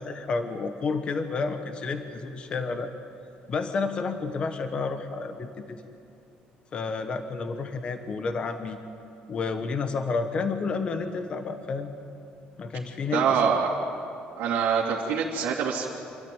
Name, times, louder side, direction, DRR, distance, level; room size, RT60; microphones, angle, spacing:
voice 1, 0.0-2.9 3.5-5.8 6.7-8.8 9.3-11.9 12.6-13.5, left 4 dB, 30° left, 7 dB, 1.3 m, -30 dB
voice 2, 13.1-13.7 14.4-15.9, right 6 dB, 75° right, -4 dB, 2.6 m, -25 dB
26.5 x 13.0 x 9.2 m, 2.6 s
cardioid pair, 165°, 3 cm